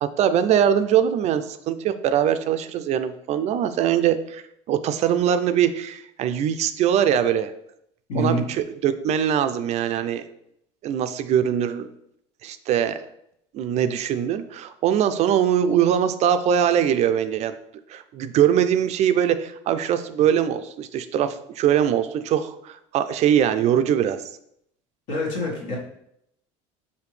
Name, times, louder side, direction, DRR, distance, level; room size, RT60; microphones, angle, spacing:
voice 1, 0.0-7.5 8.2-10.2 10.8-11.9 12.4-13.0 13.5-17.5 17.9-24.2, right 9 dB, 50° right, 11 dB, 0.4 m, -22 dB
voice 2, 8.1-8.4 25.1-25.8, equal, 70° left, -2 dB, 1.6 m, -25 dB
5.0 x 2.7 x 3.2 m, 0.74 s
supercardioid pair, 95°, 15 cm